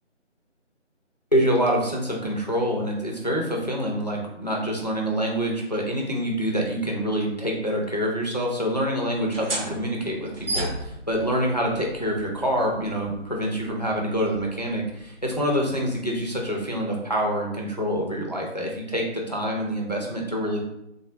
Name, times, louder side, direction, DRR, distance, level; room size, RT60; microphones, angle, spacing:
voice 1, 1.3-20.6, equal, 35° left, -1 dB, 0.4 m, -26 dB
sound 1, 9.2-16.4, right 1 dB, 50° right, 0.7 m, -36 dB
3.5 x 2.1 x 2.6 m, 0.81 s
figure-of-eight pair, 160°, 36 cm